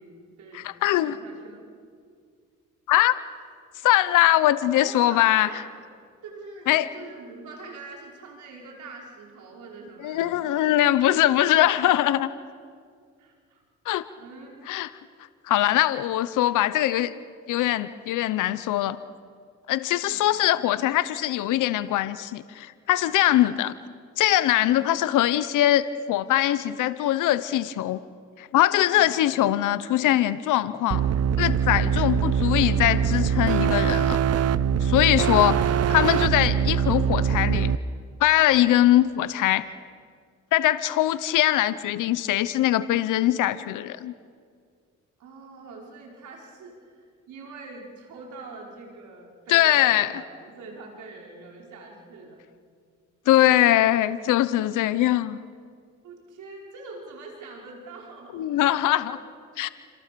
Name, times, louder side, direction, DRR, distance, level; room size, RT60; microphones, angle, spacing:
voice 1, 0.0-0.7 1.0-1.7 4.7-5.7 6.2-10.8 13.2-13.6 14.2-14.8 17.5-17.7 20.0-20.3 23.3-23.5 24.9-25.0 28.9-29.2 31.7-32.1 45.2-52.4 56.0-58.6 58.8-59.1, right 3 dB, 75° right, -1 dB, 5.2 m, -44 dB
voice 2, 0.5-1.2 2.9-3.1 3.8-5.5 6.7-6.9 10.0-12.3 13.9-14.0 14.7-14.9 15.5-17.1 17.5-19.0 19.7-23.7 24.2-28.0 28.4-31.0 31.4-34.2 34.8-35.6 35.9-37.7 38.2-39.6 40.5-44.1 49.5-50.2 53.3-55.4 58.3-59.2 59.6-59.7, left 14 dB, 85° left, 14 dB, 0.9 m, -22 dB
sound 1, 30.9-37.8, right 7 dB, 55° right, 0.8 m, -23 dB
29.5 x 26.5 x 6.9 m, 2.1 s
cardioid pair, 90°, 30 cm